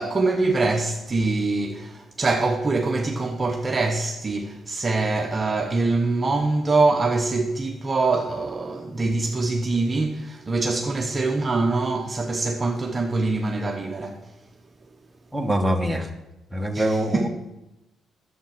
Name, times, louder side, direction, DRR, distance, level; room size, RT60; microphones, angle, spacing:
voice 1, 0.0-14.3 16.7-17.3, right 3 dB, 30° right, 0.9 m, -24 dB
voice 2, 15.3-16.1 16.5-17.3, equal, 5° right, 1.4 m, -24 dB
10.5 x 7.5 x 5.8 m
cardioid pair, 90°, 0 cm